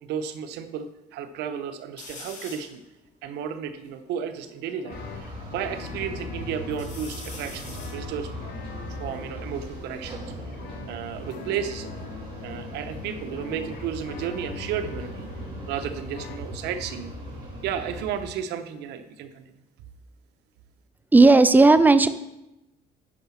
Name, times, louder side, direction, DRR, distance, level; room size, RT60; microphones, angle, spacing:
voice 1, 0.0-2.8 3.2-8.3 8.9-10.6 10.9-11.9 12.4-15.3 15.7-17.1 17.6-19.5, right 8 dB, 85° right, 9 dB, 0.9 m, -33 dB
sound 1, 2.0-2.8 3.4-3.5 3.6-5.2 5.7-6.3 6.7-10.1 11.0-12.9 13.2-13.7 15.2-17.9 18.2-19.0, left 3 dB, 45° left, 3.1 m, -48 dB
sound 2, 4.8-16.4, left 7 dB, 70° left, 1.0 m, -44 dB
sound 3, 4.9-18.2, equal, 30° right, 4.2 m, -38 dB
voice 2, 21.1-22.1, right 3 dB, 10° right, 13 dB, 0.5 m, -14 dB
10.0 x 5.8 x 5.7 m, 0.90 s
cardioid pair, 110°, 17 cm